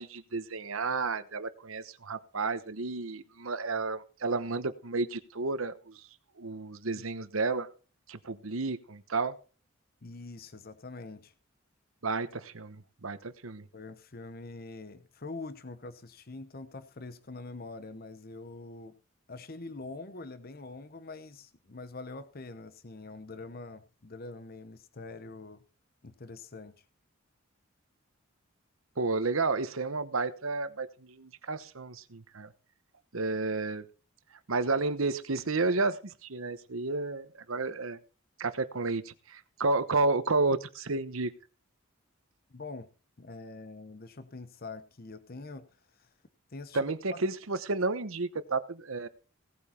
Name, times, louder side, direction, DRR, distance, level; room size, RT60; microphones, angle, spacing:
voice 1, 0.0-6.0 6.4-7.7 8.1-9.3 12.0-13.7 29.0-32.5 33.1-33.9 34.5-38.0 38.4-41.3 46.7-49.1, right 3 dB, 80° right, 1.0 m, -31 dB
voice 2, 10.0-11.3 13.7-18.9 19.3-25.6 26.0-26.7 42.5-42.9 43.2-45.7 45.9-46.1 46.5-47.2, left 3 dB, 45° left, 0.9 m, -44 dB
17.0 x 8.5 x 4.4 m
head